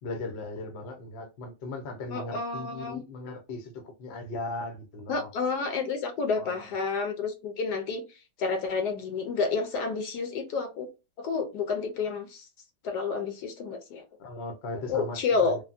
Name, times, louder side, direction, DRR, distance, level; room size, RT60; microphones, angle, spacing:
voice 1, 0.0-5.3 6.4-6.7 14.2-15.6, left 2 dB, 55° left, 0.7 m, -38 dB
voice 2, 2.1-3.0 5.1-8.0 8.4-10.9 11.2-12.5 12.8-14.0 14.9-15.6, left 4 dB, 75° left, 1.1 m, -30 dB
3.4 x 2.1 x 2.4 m
omnidirectional pair, 1.9 m